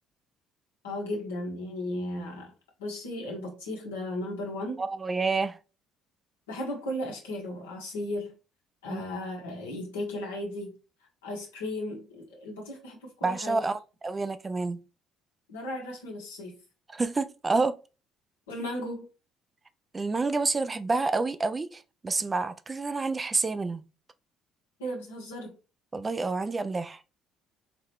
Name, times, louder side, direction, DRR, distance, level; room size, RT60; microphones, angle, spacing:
voice 1, 0.8-2.5 2.8-4.8 6.5-8.3 8.8-10.7 11.2-13.6 15.5-16.6 18.5-19.1 24.8-25.5, left 1 dB, 85° left, 1.3 m, -35 dB
voice 2, 4.8-5.6 8.9-9.0 13.2-14.8 16.9-17.8 19.9-23.8 25.9-27.0, right 3 dB, 30° right, 0.4 m, -28 dB
3.9 x 3.1 x 3.1 m
hypercardioid pair, 55°, 0 cm